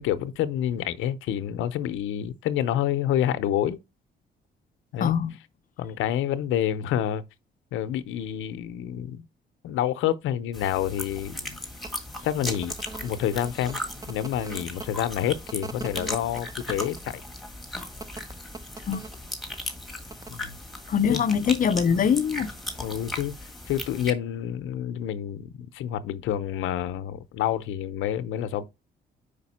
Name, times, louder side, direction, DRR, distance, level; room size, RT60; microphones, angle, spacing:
voice 1, 0.0-3.8 4.9-5.2 5.8-7.2 7.7-9.3 9.6-11.6 12.2-12.7 13.0-13.8 14.1-17.2 20.3-20.6 21.1-21.2 22.8-23.3 23.7-28.6, left 11 dB, 85° left, 0.6 m, -28 dB
voice 2, 5.0-5.3 18.9-19.0 20.9-22.5, left 7 dB, 45° left, 0.6 m, -23 dB
sound 1, 10.5-24.1, left 1 dB, ahead, 1.5 m, -37 dB
sound 2, 11.8-11.9 12.4-14.9 15.5-17.0 18.0-19.1 20.1-20.3, right 3 dB, 20° right, 0.6 m, -40 dB
5.2 x 5.0 x 4.1 m
cardioid pair, 90°, 20 cm